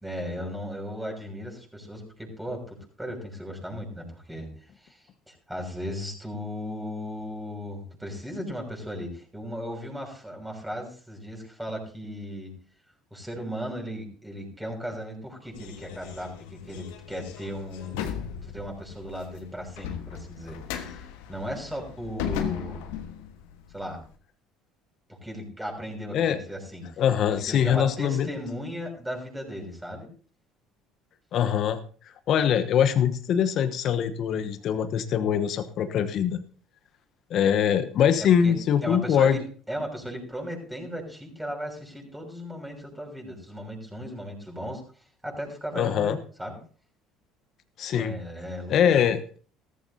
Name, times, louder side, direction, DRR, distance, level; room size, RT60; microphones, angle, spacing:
voice 1, 0.0-4.5 4.8-12.5 13.1-22.8 23.7-24.0 25.1-26.9 27.3-30.1 38.4-38.5 38.8-44.8 45.2-46.6 47.9-48.7, equal, 5° right, 1 dB, 6.3 m, -36 dB
sound 1, 15.5-24.1, left 9 dB, 75° left, 1.4 m, -37 dB
voice 2, 27.0-28.3 31.3-31.8 32.3-36.4 37.3-39.4 45.7-46.2 47.8-48.1 48.7-49.4, left 8 dB, 55° left, 9 dB, 1.1 m, -23 dB
16.5 x 14.0 x 2.8 m, 0.42 s
hypercardioid pair, 65°, 0 cm